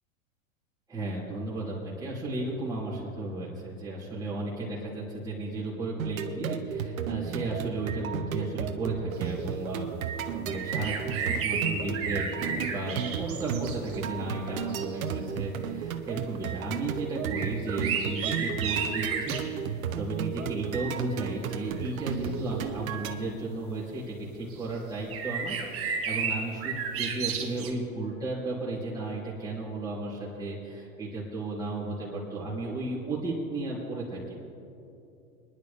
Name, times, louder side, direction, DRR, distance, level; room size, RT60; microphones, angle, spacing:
voice 1, 0.9-34.3, right 2 dB, 10° right, -9 dB, 3.2 m, -34 dB
sound 1, 6.0-23.1, right 8 dB, 75° right, 1.0 m, -34 dB
sound 2, 10.5-14.0 14.7-14.8 17.2-19.5 21.5-21.9 22.6-22.7 24.5-24.6 25.1-27.7, right 6 dB, 30° right, 1.9 m, -32 dB
25.0 x 10.5 x 3.5 m, 2.7 s
hypercardioid pair, 105°, 42 cm